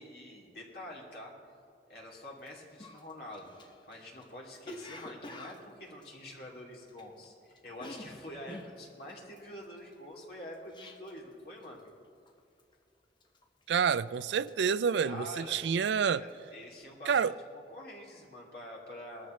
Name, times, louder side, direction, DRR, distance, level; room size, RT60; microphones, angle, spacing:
voice 1, 0.0-1.3 1.9-11.8 15.0-15.6 16.1-19.3, left 1 dB, 60° left, 2.7 m, -46 dB
Cough, 2.4-2.5 2.8-7.3 7.5-11.3 11.6-12.0 12.3-12.7 13.2-13.8 14.1-15.8 16.1-16.4, left 1 dB, 25° left, 0.8 m, -49 dB
voice 2, 13.7-16.2 17.1-17.3, right 6 dB, 85° right, 0.4 m, -28 dB
19.5 x 13.5 x 3.2 m
head